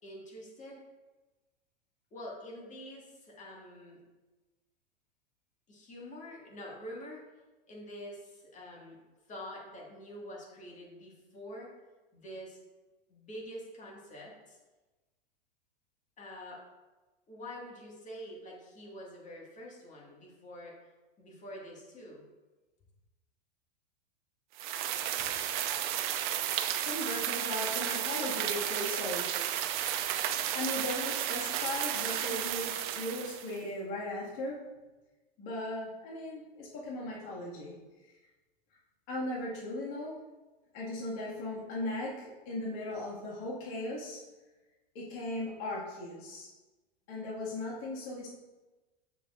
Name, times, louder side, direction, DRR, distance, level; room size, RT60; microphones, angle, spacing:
voice 1, 0.0-0.8 2.1-4.0 5.7-7.2 7.7-9.0 9.3-11.7 12.1-12.6 13.1-14.6 16.2-16.6 17.3-20.8 21.2-22.2, equal, 25° left, -3 dB, 2.0 m, -46 dB
sound 1, 24.6-33.6, right 11 dB, 55° right, 0.6 m, -33 dB
voice 2, 26.8-29.3 30.5-34.6 35.4-37.7 39.1-40.2 40.7-44.2 44.9-46.5 47.1-48.3, left 1 dB, 45° left, -5 dB, 2.1 m, -37 dB
6.6 x 6.3 x 2.6 m, 1.2 s
hypercardioid pair, 100°, 29 cm